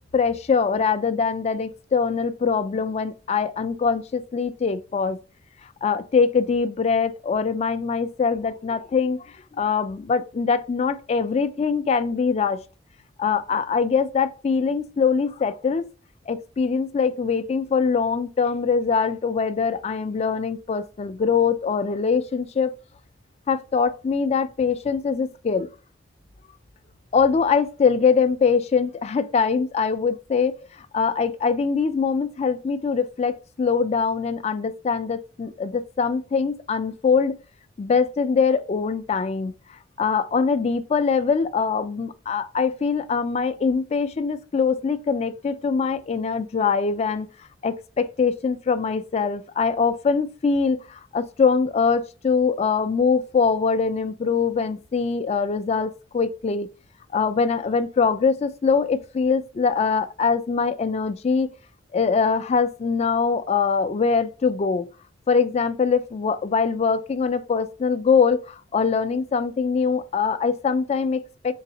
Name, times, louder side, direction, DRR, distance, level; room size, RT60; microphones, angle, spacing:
voice 1, 0.1-5.2 5.8-9.2 9.6-12.6 13.2-15.9 16.3-22.7 23.5-25.7 27.1-37.4 37.8-39.5 40.0-47.3 47.6-56.7 57.1-61.5 61.9-64.9 65.3-71.5, left 5 dB, 35° left, 0.3 m, -23 dB
3.9 x 3.4 x 2.7 m
head